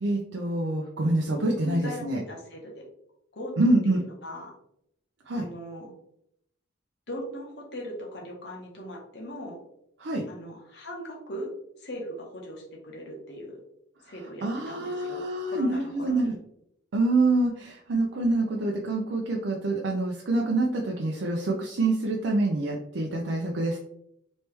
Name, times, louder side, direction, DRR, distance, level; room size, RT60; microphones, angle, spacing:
voice 1, 0.0-2.2 3.6-4.0 5.3-5.4 10.0-10.2 14.4-16.4 16.9-23.8, right 2 dB, 70° right, -1 dB, 0.5 m, -26 dB
voice 2, 1.6-2.9 3.3-4.5 5.3-5.9 7.1-9.6 10.3-11.5 11.8-13.6 14.0-16.4, equal, 65° left, -1 dB, 1.0 m, -39 dB
3.2 x 3.0 x 3.3 m, 0.75 s
head